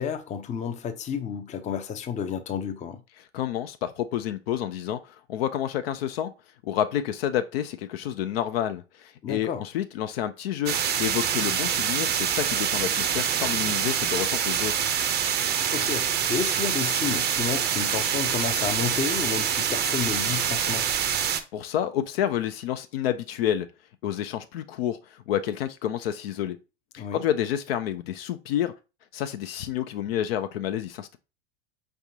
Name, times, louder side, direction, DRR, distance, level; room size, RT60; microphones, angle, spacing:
voice 1, 0.0-3.0 9.2-9.6 15.4-20.9 27.0-27.2, left 7 dB, 20° left, 0.6 m, -31 dB
voice 2, 3.3-6.3 6.6-14.7 21.3-23.7 24.0-26.6 26.9-28.7 29.1-31.2, left 10 dB, 60° left, 0.6 m, -29 dB
sound 1, 10.7-21.4, right 8 dB, 30° right, 0.6 m, -26 dB
4.9 x 3.4 x 2.7 m
hypercardioid pair, 90°, 34 cm